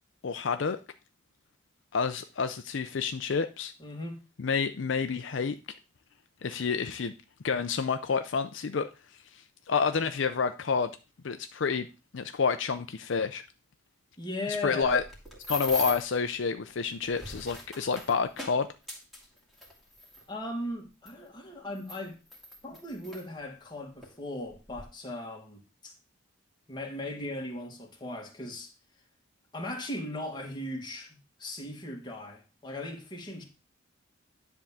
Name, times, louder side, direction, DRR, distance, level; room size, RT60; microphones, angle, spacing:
voice 1, 0.2-0.8 1.9-3.7 4.4-5.6 6.4-7.1 7.4-8.9 9.3-10.9 11.2-11.9 12.1-13.4 14.6-15.0 15.5-18.7, left 5 dB, 65° left, 0.5 m, -29 dB
voice 2, 3.8-4.2 14.2-15.0 20.3-22.2 22.6-25.9 26.7-28.7 29.5-33.4, left 1 dB, 20° left, 1.8 m, -38 dB
sound 1, 14.8-16.2 16.9-20.2 21.1-21.2 21.8-23.2 24.0-24.2 24.5-24.8, left 1 dB, ahead, 2.1 m, -40 dB
10.5 x 3.6 x 7.1 m
head